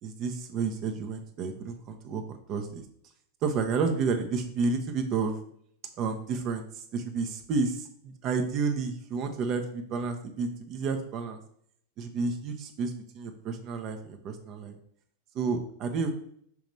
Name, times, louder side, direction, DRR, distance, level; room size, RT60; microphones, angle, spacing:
voice 1, 0.0-2.8 3.4-5.4 6.0-11.4 12.0-14.7 15.3-16.1, right 4 dB, 35° right, 6 dB, 0.8 m, -31 dB
5.8 x 3.1 x 5.3 m, 0.65 s
supercardioid pair, 160°, 0 cm